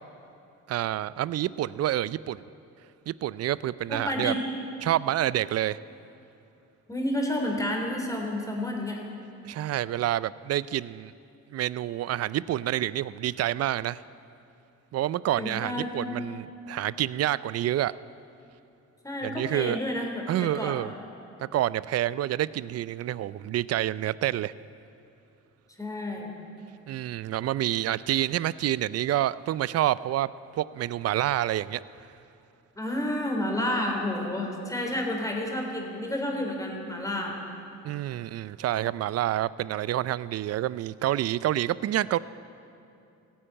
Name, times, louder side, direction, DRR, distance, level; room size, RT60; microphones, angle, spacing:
voice 1, 0.7-2.4 3.1-4.3 4.8-5.8 9.4-11.1 11.5-14.0 14.9-17.9 19.2-19.8 20.3-20.9 21.4-24.5 26.9-30.3 30.6-31.8 37.8-42.2, right 13 dB, 55° right, 19 dB, 0.5 m, -28 dB
voice 2, 3.9-4.4 6.9-9.0 15.3-16.1 19.0-20.8 25.8-26.3 32.8-37.4, left 1 dB, 10° left, 1 dB, 3.3 m, -30 dB
16.0 x 10.0 x 8.8 m, 2.7 s
cardioid pair, 90°, 30 cm